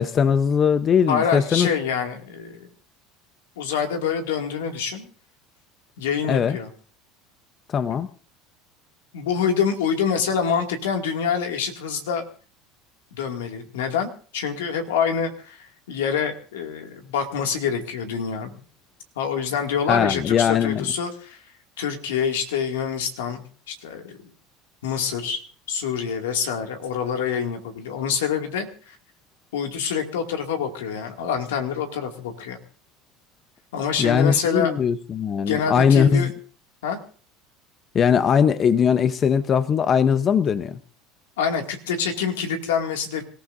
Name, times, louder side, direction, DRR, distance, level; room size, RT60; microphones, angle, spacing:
voice 1, 0.0-1.7 6.3-6.6 7.7-8.1 19.9-20.8 34.0-36.3 37.9-40.8, left 7 dB, 35° left, 13 dB, 0.8 m, -20 dB
voice 2, 1.1-2.7 3.6-5.1 6.0-6.7 9.1-12.2 13.1-18.5 19.2-21.4 21.8-24.2 24.8-25.4 25.7-29.0 29.5-32.6 33.7-34.8 35.5-36.3 36.8-37.0 41.4-43.2, left 7 dB, 90° left, 4 dB, 2.3 m, -26 dB
27.0 x 14.5 x 2.6 m, 0.41 s
supercardioid pair, 105°, 0 cm